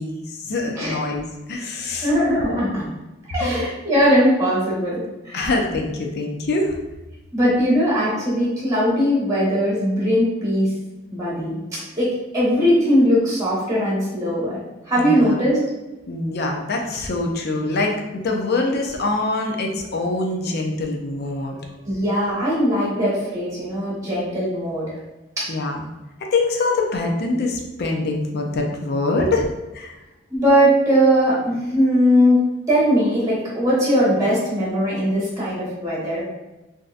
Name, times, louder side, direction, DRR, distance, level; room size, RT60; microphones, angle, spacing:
voice 1, 0.0-2.1 2.4-2.6 3.4-3.5 5.3-6.8 15.0-15.4 16.1-21.6 25.5-25.8 26.2-29.5 29.7-30.0, left 2 dB, 50° left, 1 dB, 0.5 m, -24 dB
voice 2, 1.9-2.9 3.3-5.5 7.3-10.7 11.1-14.6 14.9-15.6 21.8-25.0 25.4-25.5 30.3-32.4 32.7-36.2, equal, 15° right, -7 dB, 1.1 m, -20 dB
3.5 x 2.7 x 2.4 m, 1.1 s
head